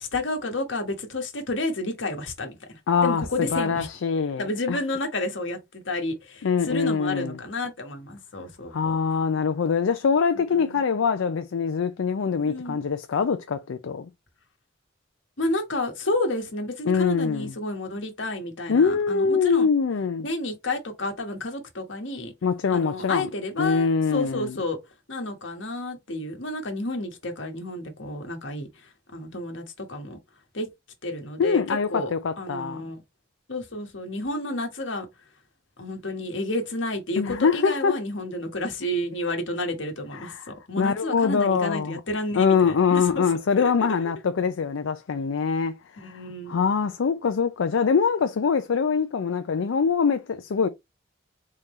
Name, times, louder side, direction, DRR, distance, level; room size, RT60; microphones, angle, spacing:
voice 1, 0.0-3.9 4.4-8.9 10.3-10.8 12.4-12.8 15.4-19.7 20.2-22.3 22.7-24.8 25.1-30.2 30.5-30.7 31.0-33.0 33.5-35.1 35.8-43.2 46.0-46.6, left 1 dB, 70° left, 1.4 m, -31 dB
voice 2, 2.9-4.8 6.4-7.4 8.7-14.1 16.9-17.5 18.7-20.3 22.4-23.3 23.6-24.6 31.4-32.8 37.2-37.9 40.1-40.4 40.8-42.0 42.4-46.2 46.5-50.7, left 5 dB, 85° left, 0.4 m, -24 dB
4.2 x 3.7 x 3.1 m
head